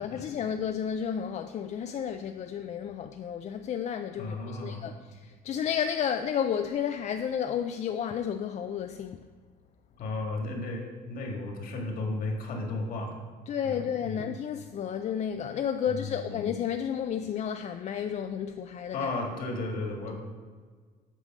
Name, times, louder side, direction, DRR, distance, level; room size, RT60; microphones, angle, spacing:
voice 1, 0.0-9.2 13.5-19.1, left 8 dB, 45° left, 0.4 m, -32 dB
voice 2, 4.2-4.9 10.0-13.2 13.6-14.3 15.8-16.5 18.9-20.2, left 2 dB, 60° left, 1.8 m, -34 dB
8.1 x 4.0 x 6.0 m
cardioid pair, 110°, 17 cm